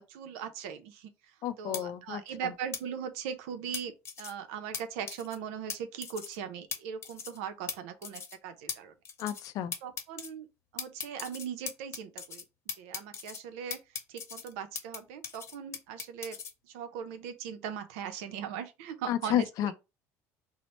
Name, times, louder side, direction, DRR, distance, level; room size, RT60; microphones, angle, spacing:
voice 1, 0.0-8.9 9.8-10.5 10.7-12.4 12.8-13.8 14.1-16.4 16.6-19.5, right 8 dB, 90° right, 0.6 m, -39 dB
voice 2, 1.4-2.5 9.2-9.7 19.1-19.7, left 11 dB, 60° left, 0.4 m, -31 dB
sound 1, 1.7-1.8 2.7-2.8 3.7-4.3 4.7-4.8 5.1-5.4 5.7-5.8 6.0-6.4 6.7-6.8 7.0-7.4 7.7-7.8 8.0-8.4 8.7-8.8 9.0-9.5 9.7-10.3 10.8-12.4 12.7-13.4 13.7-15.0 15.2-16.5, left 6 dB, 40° left, 0.8 m, -38 dB
3.0 x 2.0 x 4.1 m
cardioid pair, 115°, 7 cm